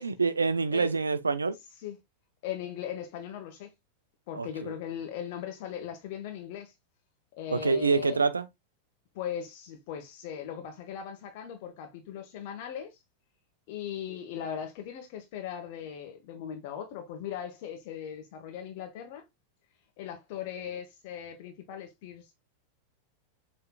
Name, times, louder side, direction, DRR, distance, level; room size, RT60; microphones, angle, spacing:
voice 1, 0.0-1.6 4.3-4.7 7.5-8.5, right 4 dB, 75° right, 0.5 m, -26 dB
voice 2, 2.4-3.7 4.3-6.7 7.4-8.2 9.1-12.9 13.7-19.2 20.0-22.4, left 9 dB, 50° left, 1.2 m, -39 dB
6.7 x 3.3 x 2.3 m
figure-of-eight pair, 90°, 0 cm